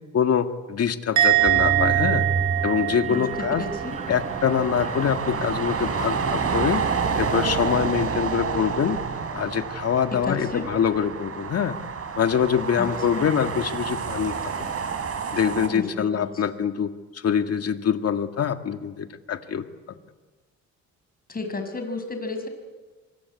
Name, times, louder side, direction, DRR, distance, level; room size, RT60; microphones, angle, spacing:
voice 1, 0.1-2.3 2.6-3.6 4.1-6.8 7.2-9.0 9.3-11.8 12.2-14.7 15.3-20.0, left 8 dB, 55° left, 8 dB, 2.0 m, -24 dB
Musical instrument, 1.2-4.6 4.8-5.2, right 15 dB, 75° right, 4.4 m, -24 dB
Mechanisms, 1.3-8.0, right 4 dB, 20° right, 0.8 m, -32 dB
voice 2, 3.0-4.0 10.2-10.7 12.8-12.9 13.1-13.2 15.7-15.9 16.1-16.4 21.3-22.5, left 3 dB, 30° left, 6 dB, 5.9 m, -32 dB
sound 1, 3.3-15.7, right 5 dB, 50° right, 4.2 m, -29 dB
24.5 x 22.5 x 9.7 m, 1.3 s
cardioid pair, 90°, 30 cm